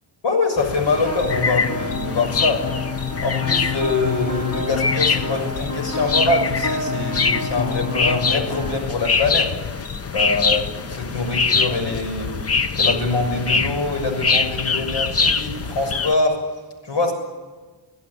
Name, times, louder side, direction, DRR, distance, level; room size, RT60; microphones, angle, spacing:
voice 1, 0.2-2.6 3.2-9.5 10.1-12.3 12.7-16.4 16.8-17.1, left 3 dB, 80° left, 5 dB, 6.8 m, -24 dB
sound 1, 0.6-16.1, left 5 dB, 35° left, 0.9 m, -24 dB
sound 2, 1.0-8.8, left 4 dB, 55° left, 3.4 m, -28 dB
28.5 x 16.5 x 9.8 m, 1.3 s
wide cardioid pair, 120°, 43 cm